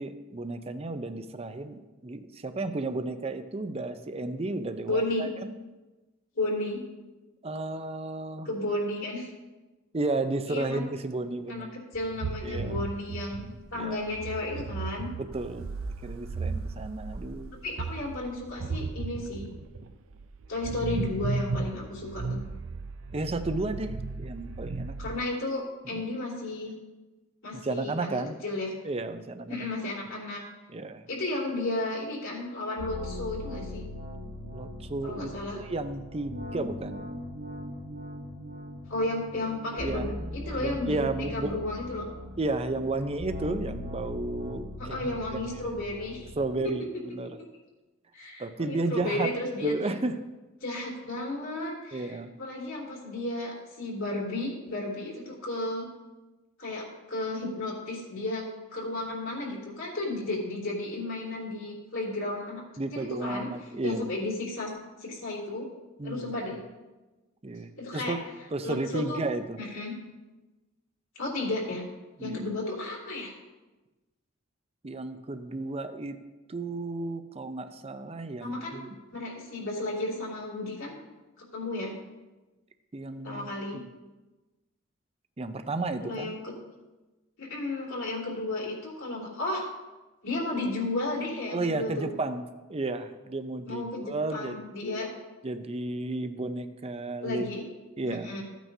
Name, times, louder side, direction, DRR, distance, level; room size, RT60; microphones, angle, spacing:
voice 1, 0.0-5.5 7.4-8.5 9.9-11.7 12.4-12.9 13.8-14.0 15.2-17.6 23.1-24.9 25.9-26.0 27.5-28.4 28.8-29.7 30.7-31.0 34.5-37.0 39.8-40.1 40.6-41.6 42.4-45.7 46.4-47.3 48.4-49.3 49.6-50.2 51.9-52.3 62.8-64.1 66.0-66.3 67.4-68.2 68.5-69.6 72.2-72.5 74.8-76.2 76.5-79.0 82.9-83.8 85.4-86.3 91.5-94.6 95.4-97.5 98.0-98.3, right 2 dB, 30° right, 9 dB, 0.6 m, -33 dB
voice 2, 4.9-5.3 6.3-6.8 8.4-9.3 10.5-10.8 11.5-11.7 11.9-15.1 17.6-19.5 20.5-22.4 25.0-26.7 27.4-28.7 29.5-30.4 31.1-33.8 35.0-35.6 38.9-42.1 44.8-46.3 46.6-46.7 48.1-49.9 50.6-55.8 56.6-58.4 58.7-62.6 62.9-63.5 63.8-64.7 65.0-65.6 66.0-66.6 67.8-68.2 68.6-69.2 69.6-69.9 71.1-71.8 72.2-73.3 78.4-78.8 79.1-80.9 81.4-81.9 83.2-83.8 86.0-86.5 87.4-89.6 90.2-92.1 93.7-95.1 97.2-97.6 98.1-98.4, left 2 dB, 75° left, -4 dB, 3.1 m, -33 dB
sound 1, 11.9-25.2, right 4 dB, 75° right, 0.5 m, -35 dB
sound 2, 32.8-46.6, left 1 dB, 50° right, 1.2 m, -40 dB
15.0 x 9.1 x 2.8 m, 1.1 s
head